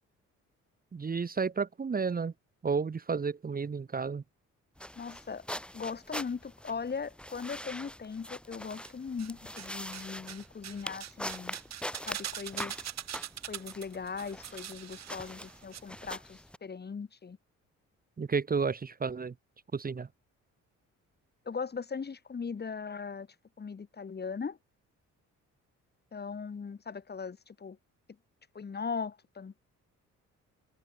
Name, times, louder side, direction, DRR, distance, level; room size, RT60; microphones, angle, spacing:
voice 1, 0.9-2.3 2.6-4.2 18.2-19.3 19.7-20.1, right 5 dB, 30° right, 1.3 m, -31 dB
sound 1, 4.8-16.6, equal, 5° left, 7.8 m, -43 dB
voice 2, 5.0-5.4 5.7-11.5 12.1-12.7 13.5-17.4 21.5-23.3 23.6-24.6 26.1-27.8 28.5-29.6, left 5 dB, 35° left, 2.1 m, -39 dB
sound 2, 8.9-9.7 9.9-15.8 16.1-16.2, right 10 dB, 60° right, 1.7 m, -42 dB
cardioid pair, 90°, 30 cm